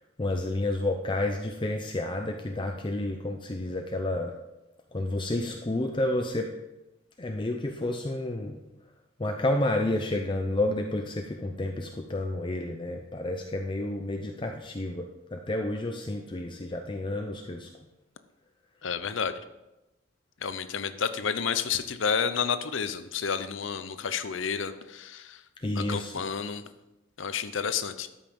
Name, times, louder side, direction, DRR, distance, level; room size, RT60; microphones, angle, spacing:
voice 1, 0.2-4.3 4.9-6.5 7.2-8.6 9.2-17.7 25.6-26.1, left 1 dB, 25° left, 3 dB, 0.6 m, -30 dB
voice 2, 18.8-19.3 20.4-25.4 25.7-26.6 27.2-28.1, left 6 dB, 70° left, 11 dB, 0.7 m, -30 dB
13.5 x 5.7 x 5.4 m, 0.98 s
head